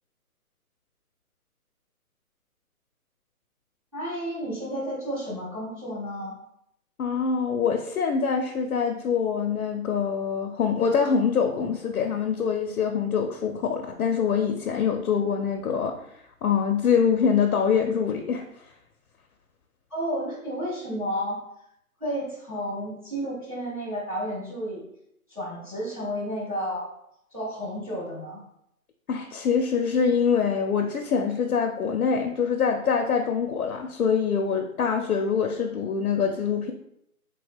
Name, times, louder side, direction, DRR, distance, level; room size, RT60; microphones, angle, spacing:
voice 1, 3.9-6.4 19.9-21.4 22.0-24.8 25.3-26.9 27.3-28.4, equal, 25° right, -10 dB, 0.7 m, -31 dB
voice 2, 7.0-15.9 16.4-18.4 29.1-36.7, left 6 dB, 75° left, 3 dB, 0.5 m, -24 dB
3.3 x 2.2 x 3.4 m, 0.76 s
hypercardioid pair, 175°, 44 cm